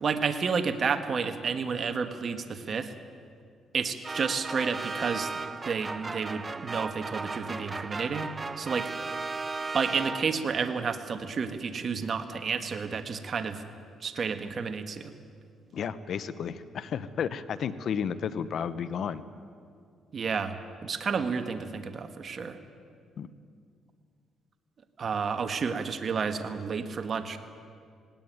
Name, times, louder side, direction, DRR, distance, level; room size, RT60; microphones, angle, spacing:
voice 1, 0.0-2.9 3.7-8.3 8.6-8.9 9.7-13.6 14.0-15.1 20.1-20.5 20.8-22.6 25.0-27.4, right 5 dB, 45° right, 8 dB, 1.6 m, -31 dB
sound 1, 4.0-10.6, right 3 dB, 25° right, 0.9 m, -36 dB
voice 2, 15.7-19.2 23.2-23.3, left 7 dB, 65° left, 14 dB, 1.0 m, -32 dB
19.0 x 18.0 x 9.5 m, 2.2 s
cardioid pair, 90°, 0 cm